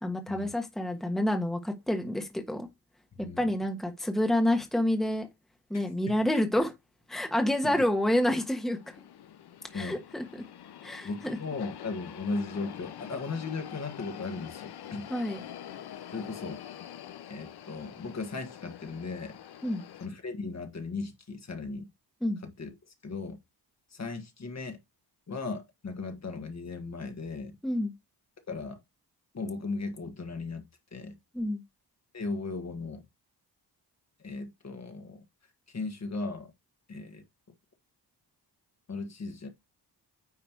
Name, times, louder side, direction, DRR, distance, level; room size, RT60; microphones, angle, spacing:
voice 1, 0.0-2.7 3.2-5.3 5.7-6.7 7.1-8.9 9.7-10.2 10.8-11.4 15.1-15.4 19.6-19.8 22.2-22.4 27.6-27.9 31.3-31.6, left 1 dB, ahead, 1.2 m, -28 dB
voice 2, 3.2-3.5 6.1-6.2 7.6-7.8 9.7-10.0 11.0-15.1 16.1-16.6 17.3-19.4 20.0-21.9 22.4-22.7 23.0-23.4 23.9-24.8 25.3-27.6 28.5-28.8 29.3-31.2 32.1-33.0 34.2-35.2 35.7-36.5 36.9-37.2 38.9-39.5, left 3 dB, 40° left, 1.5 m, -37 dB
sound 1, 7.6-20.1, left 10 dB, 70° left, 0.8 m, -46 dB
9.5 x 3.2 x 4.5 m
cardioid pair, 100°, 40 cm